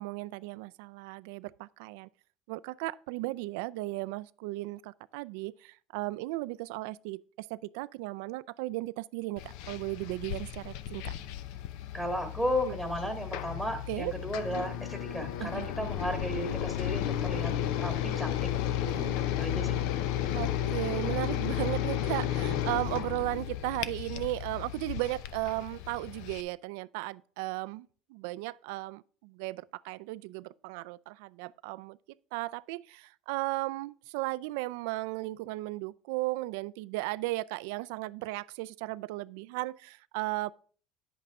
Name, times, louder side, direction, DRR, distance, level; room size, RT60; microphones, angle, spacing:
voice 1, 0.0-2.1 2.5-11.1 12.6-12.7 13.9-14.1 15.4-15.9 18.9-19.2 20.2-32.0 32.3-40.5, right 20 dB, 80° right, 0.3 m, -36 dB
sound 1, 9.4-26.4, left 11 dB, 75° left, 0.6 m, -33 dB
voice 2, 11.9-17.5 17.8-18.4 19.4-19.8, equal, 10° left, 1.8 m, -34 dB
10.0 x 7.9 x 3.6 m
supercardioid pair, 120°, 0 cm